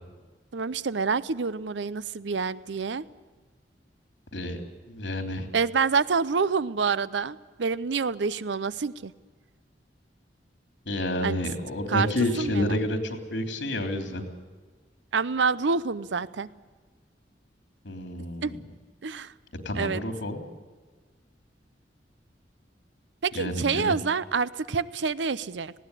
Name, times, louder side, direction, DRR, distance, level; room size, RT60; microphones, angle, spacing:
voice 1, 0.5-3.1 5.5-9.1 11.2-11.4 11.9-12.1 12.4-12.8 15.1-16.5 18.4-18.5 19.0-19.3 19.8-20.1 23.2-25.7, right 5 dB, 80° right, 18 dB, 0.6 m, -27 dB
voice 2, 4.9-5.5 10.8-14.2 17.8-18.6 19.6-20.4 23.3-23.9, left 1 dB, 75° left, 5 dB, 3.3 m, -29 dB
19.0 x 17.0 x 9.9 m, 1.4 s
head